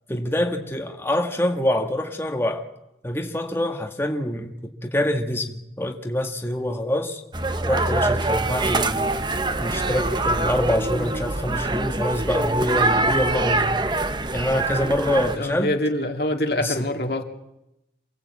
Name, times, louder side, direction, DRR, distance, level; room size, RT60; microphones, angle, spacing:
voice 1, 0.1-2.7 3.0-4.5 4.8-7.2 7.6-9.1 9.6-13.7 14.3-15.7 16.5-16.8, left 1 dB, 15° left, 3 dB, 1.5 m, -25 dB
sound 1, 7.3-15.4, right 2 dB, 25° right, 1.0 m, -24 dB
voice 2, 15.3-17.2, left 1 dB, 60° left, 4 dB, 2.3 m, -25 dB
27.5 x 18.0 x 8.3 m, 0.91 s
head